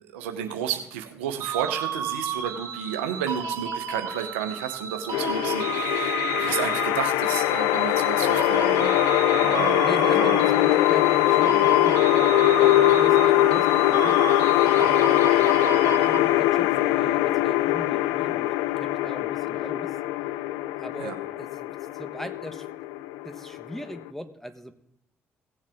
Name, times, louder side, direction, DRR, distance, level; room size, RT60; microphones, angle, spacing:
voice 1, 0.1-8.9 9.3-10.4 21.0-21.2, right 9 dB, 90° right, 6 dB, 0.8 m, -32 dB
sound 1, 1.4-16.6, right 7 dB, 70° right, 1.6 m, -32 dB
sound 2, 5.1-24.1, left 15 dB, 80° left, 0.4 m, -22 dB
voice 2, 9.8-14.2 14.7-18.5 18.8-20.0 20.8-22.7 23.2-24.7, equal, 5° left, 8 dB, 1.3 m, -39 dB
17.0 x 7.4 x 3.6 m, 0.77 s
hypercardioid pair, 45°, 6 cm